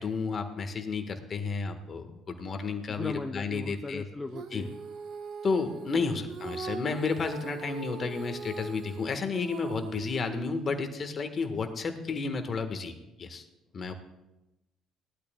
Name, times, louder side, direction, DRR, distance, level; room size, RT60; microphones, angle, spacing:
voice 1, 0.0-4.0 4.5-4.7 5.4-13.4 13.7-13.9, left 4 dB, 45° left, 7 dB, 1.7 m, -32 dB
voice 2, 2.9-4.8 6.3-6.4, left 2 dB, 15° left, 5 dB, 0.8 m, -38 dB
Female singing, 4.3-10.8, right 5 dB, 60° right, 1.1 m, -41 dB
18.5 x 12.5 x 2.4 m, 0.97 s
hypercardioid pair, 55°, 0 cm